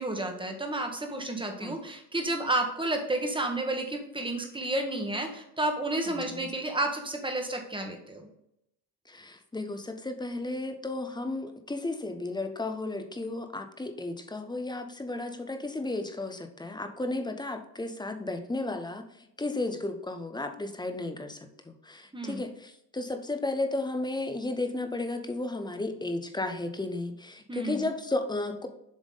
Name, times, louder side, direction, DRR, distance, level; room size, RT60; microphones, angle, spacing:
voice 1, 0.0-8.3 22.1-22.4 27.5-27.9, right 2 dB, 10° right, 3 dB, 1.3 m, -31 dB
voice 2, 6.1-6.5 9.1-19.0 19.4-28.7, left 2 dB, 10° left, 7 dB, 0.7 m, -34 dB
7.4 x 3.5 x 3.8 m, 0.80 s
supercardioid pair, 80°, 48 cm